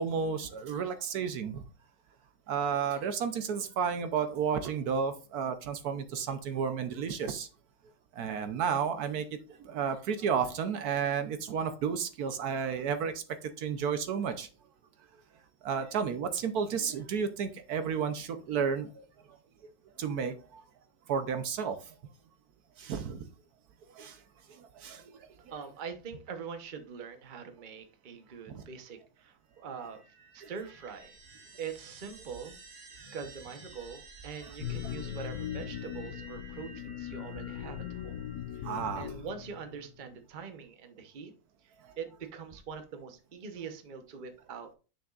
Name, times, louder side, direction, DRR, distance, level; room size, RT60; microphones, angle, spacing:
voice 1, 0.0-1.6 2.5-7.5 8.1-14.5 15.6-19.0 20.0-20.6 21.1-21.9 22.8-23.3 23.9-24.2 24.5-25.3 28.5-28.6 30.4-30.5 38.6-39.1 41.8-41.9, right 6 dB, 70° right, 9 dB, 1.2 m, -32 dB
voice 2, 25.5-30.0 30.3-31.1 31.6-32.6 33.1-38.2 38.5-41.3 42.0-44.7, right 6 dB, 35° right, 7 dB, 0.9 m, -43 dB
sound 1, 29.6-38.8, right 4 dB, 50° right, 1.5 m, -52 dB
sound 2, 34.6-39.9, left 10 dB, 70° left, 1.1 m, -39 dB
9.9 x 6.0 x 2.4 m, 0.34 s
omnidirectional pair, 1.7 m